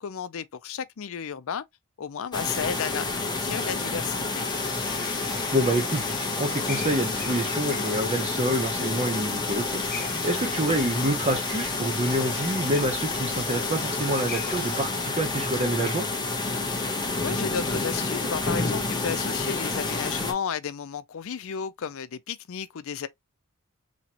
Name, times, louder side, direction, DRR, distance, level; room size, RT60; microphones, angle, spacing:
voice 1, 0.0-1.6 2.0-4.5 17.2-23.1, left 7 dB, 65° left, 0.4 m, -33 dB
sound 1, 2.3-20.3, left 3 dB, 20° left, 1.0 m, -29 dB
sound 2, 4.5-14.9, left 6 dB, 45° left, 1.0 m, -40 dB
voice 2, 5.5-16.0, right 1 dB, 30° right, 0.8 m, -27 dB
4.2 x 3.0 x 2.8 m
head